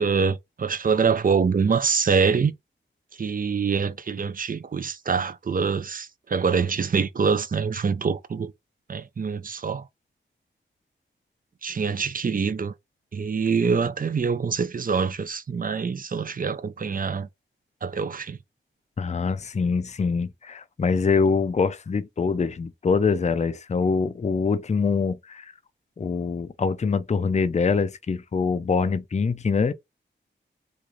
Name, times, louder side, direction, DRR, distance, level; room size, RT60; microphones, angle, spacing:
voice 1, 0.0-2.5 3.2-8.5 8.9-9.9 11.6-12.7 13.1-17.3 17.8-18.4, right 5 dB, 45° right, 0.5 m, -25 dB
voice 2, 19.0-25.5 26.0-29.7, left 5 dB, 35° left, 0.4 m, -24 dB
3.1 x 2.3 x 3.7 m
cardioid pair, 55°, 20 cm